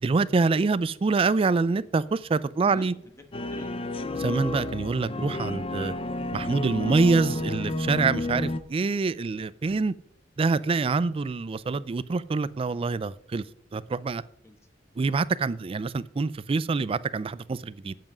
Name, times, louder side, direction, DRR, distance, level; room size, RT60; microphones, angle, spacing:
voice 1, 0.0-2.9 4.2-5.9 6.3-9.9 10.4-13.4 13.7-14.2 15.0-17.9, right 4 dB, 30° right, 0.3 m, -26 dB
voice 2, 2.5-4.0 11.2-11.3 14.4-14.6 15.5-15.6, left 1 dB, 15° left, 1.2 m, -48 dB
sound 1, 3.3-8.6, left 1 dB, 30° left, 0.5 m, -31 dB
7.6 x 7.1 x 6.2 m
head